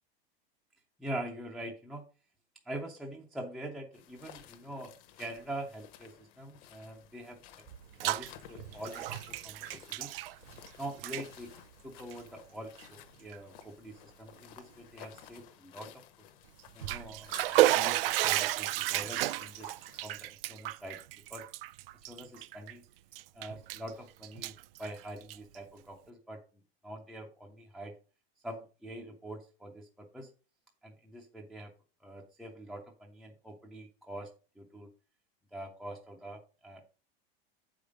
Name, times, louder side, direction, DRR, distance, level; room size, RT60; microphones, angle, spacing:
voice 1, 1.0-2.1 2.6-4.9 5.2-7.6 8.0-10.1 10.8-11.5 11.8-16.0 16.7-21.0 21.3-21.5 22.1-22.8 23.3-28.0 28.4-30.3 30.8-31.7 32.0-34.3 34.6-34.9 35.5-36.8, right 1 dB, ahead, 0 dB, 0.4 m, -44 dB
sound 1, 3.9-20.1, left 10 dB, 35° left, 0.8 m, -54 dB
Bathtub (filling or washing), 7.7-8.3 8.6-10.7 10.9-11.2 12.0-12.1 12.8-12.9 13.3-13.4 16.6-22.7 23.1-23.9 24.2-25.6, right 15 dB, 75° right, 0.5 m, -32 dB
7.9 x 5.1 x 5.0 m, 0.35 s
supercardioid pair, 170°, 29 cm